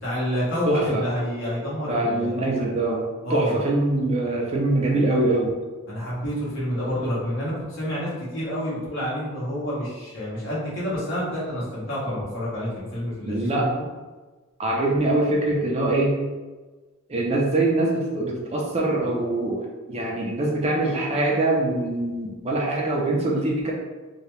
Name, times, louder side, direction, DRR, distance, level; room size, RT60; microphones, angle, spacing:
voice 1, 0.0-2.4 3.2-3.5 5.9-13.9, equal, 65° left, -7 dB, 1.2 m, -28 dB
voice 2, 0.7-1.0 1.9-5.5 13.3-13.7 14.6-16.2 17.1-23.7, right 2 dB, 30° right, -2 dB, 0.5 m, -23 dB
2.8 x 2.3 x 3.1 m, 1.3 s
head